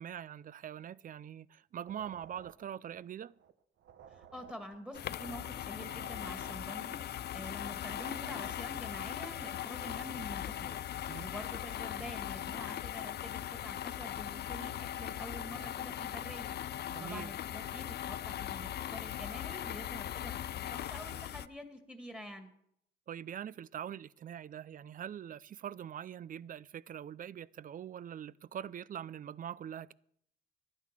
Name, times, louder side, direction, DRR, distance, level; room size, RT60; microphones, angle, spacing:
voice 1, 0.0-3.4 11.1-11.3 16.9-17.3 23.1-29.9, right 9 dB, 45° right, 0.5 m, -43 dB
sound 1, 1.8-3.5 3.8-7.5 7.8-9.1, right 9 dB, 70° right, 1.0 m, -57 dB
voice 2, 4.1-16.5 17.0-22.5, equal, 5° right, 2.0 m, -47 dB
sound 2, 4.9-21.5, left 11 dB, 55° left, 0.5 m, -39 dB
11.5 x 9.6 x 7.5 m
cardioid pair, 90°, 20 cm